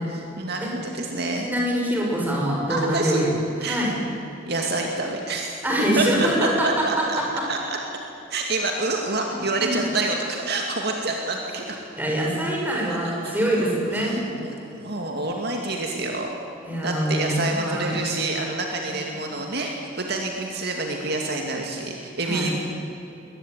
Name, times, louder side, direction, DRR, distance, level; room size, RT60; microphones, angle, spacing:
voice 1, 0.1-1.5 2.7-3.2 3.6-3.9 4.5-5.5 6.0-6.1 6.4-7.2 7.5-7.8 8.3-11.8 13.6-13.7 14.0-16.4 16.8-22.5, right 2 dB, 55° right, 1 dB, 2.4 m, -27 dB
voice 2, 1.4-3.9 5.6-6.7 9.3-9.7 11.9-14.2 16.6-17.9 22.2-22.5, equal, 10° right, -3 dB, 6.2 m, -24 dB
22.0 x 19.5 x 9.4 m, 3.0 s
head